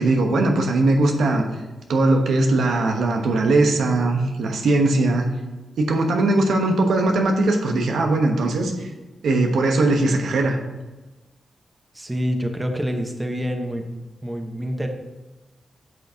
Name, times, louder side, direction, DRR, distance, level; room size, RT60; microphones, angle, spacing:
voice 1, 0.0-1.4 1.9-5.3 5.8-8.9 9.2-10.6, right 2 dB, 90° right, 3 dB, 1.0 m, -20 dB
voice 2, 11.9-13.9 14.2-14.9, equal, 20° right, 4 dB, 1.0 m, -26 dB
10.5 x 6.0 x 2.8 m, 1.1 s
cardioid pair, 75°, 0 cm